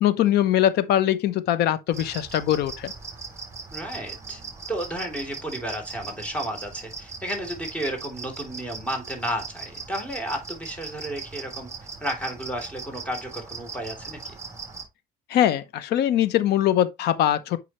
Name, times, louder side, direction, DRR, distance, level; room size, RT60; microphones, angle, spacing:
voice 1, 0.0-2.9 15.3-17.6, left 11 dB, 75° left, 0.8 m, -22 dB
sound 1, 1.9-14.8, right 4 dB, 15° right, 3.0 m, -39 dB
voice 2, 3.7-4.4 4.7-11.7 12.0-14.4, equal, 10° left, 3.1 m, -32 dB
7.7 x 5.4 x 3.0 m
cardioid pair, 110°, 17 cm